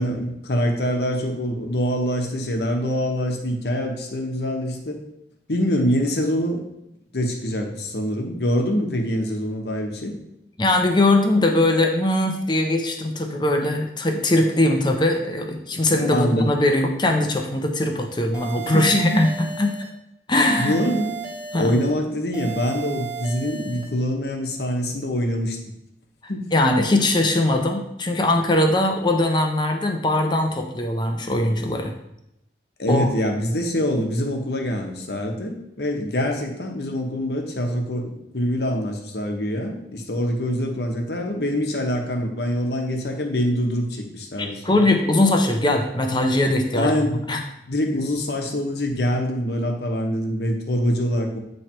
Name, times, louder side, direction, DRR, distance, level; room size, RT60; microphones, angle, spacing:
voice 1, 0.0-5.0 5.5-6.6 7.1-10.1 15.9-16.6 18.6-19.3 20.6-21.2 21.5-25.6 26.3-26.4 32.8-44.9 46.7-47.2 47.7-51.4, equal, 65° left, 2 dB, 1.1 m, -24 dB
voice 2, 10.6-19.7 20.3-20.7 21.5-21.7 26.5-31.9 32.9-33.1 44.6-46.9 47.3-47.4, left 1 dB, 25° left, 3 dB, 0.7 m, -20 dB
sound 1, 18.3-19.9 20.3-21.9 22.3-23.9, right 7 dB, 5° right, 1.1 m, -34 dB
8.7 x 3.3 x 4.4 m, 0.82 s
head